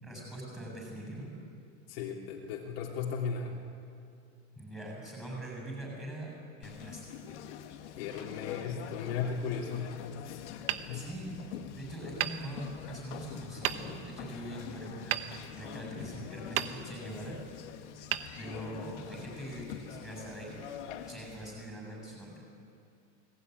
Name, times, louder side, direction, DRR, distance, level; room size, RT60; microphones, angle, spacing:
voice 1, 0.0-1.3 4.6-6.3 6.6-7.0 10.9-15.3 15.5-17.4 18.4-20.6 21.1-22.4, right 1 dB, ahead, -1 dB, 7.6 m, -42 dB
voice 2, 1.9-3.6 8.0-9.9 10.9-11.0, left 6 dB, 55° left, -2 dB, 3.2 m, -36 dB
Conversation, 6.6-21.5, left 9 dB, 80° left, 2.2 m, -45 dB
Hammer, 10.7-11.7 12.2-13.1 13.6-14.3 15.1-16.1 16.5-17.3 18.1-19.0, right 13 dB, 55° right, 1.2 m, -37 dB
29.0 x 20.5 x 9.6 m, 2.5 s
supercardioid pair, 175°, 35 cm